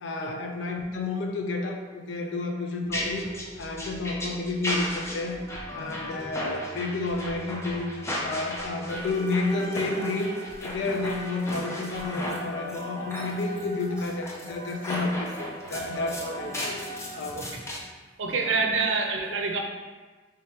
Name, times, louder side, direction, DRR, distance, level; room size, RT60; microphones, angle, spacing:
voice 1, 0.0-3.3 3.6-5.4 5.7-7.9 8.2-10.3 10.6-16.8 17.1-17.5 18.3-18.5, left 3 dB, 80° left, 3 dB, 0.5 m, -30 dB
sound 1, 2.9-17.8, left 1 dB, 15° left, 0.5 m, -35 dB
voice 2, 18.2-19.6, right 4 dB, 85° right, 2 dB, 0.5 m, -26 dB
3.3 x 3.3 x 2.9 m, 1.3 s
head